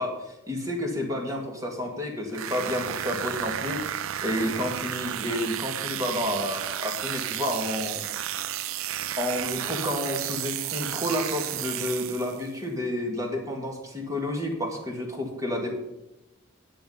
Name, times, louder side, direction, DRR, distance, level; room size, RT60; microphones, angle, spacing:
voice 1, 0.0-3.8 4.2-8.0 9.2-15.7, left 1 dB, 15° right, 2 dB, 1.8 m, -30 dB
sound 1, 2.3-12.5, right 11 dB, 85° right, 0.4 m, -32 dB
10.5 x 8.1 x 5.4 m, 0.95 s
head